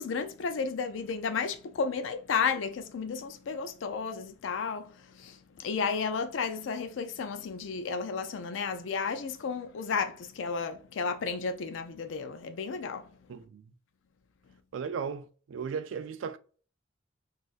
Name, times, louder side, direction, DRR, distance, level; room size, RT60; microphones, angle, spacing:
voice 1, 0.0-13.1, left 5 dB, 80° left, 0.4 m, -33 dB
voice 2, 13.3-13.6 14.7-16.4, right 6 dB, 85° right, 0.4 m, -36 dB
3.9 x 2.4 x 2.4 m
head